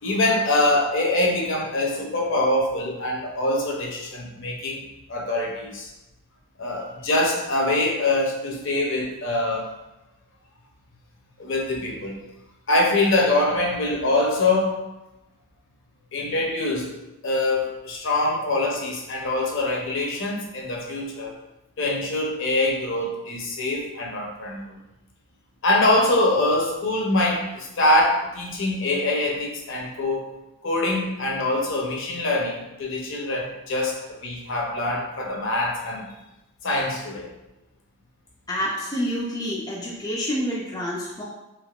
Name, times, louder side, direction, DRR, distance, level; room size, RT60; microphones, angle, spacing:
voice 1, 0.0-5.9 6.6-9.7 11.4-12.2 12.7-14.8 16.1-17.0 17.2-21.3 21.8-24.8 25.6-30.2 30.6-36.1 36.6-37.3, left 2 dB, 60° left, -1 dB, 0.7 m, -24 dB
voice 2, 38.5-41.2, equal, 15° left, -5 dB, 0.4 m, -28 dB
3.4 x 2.9 x 2.3 m, 0.97 s
head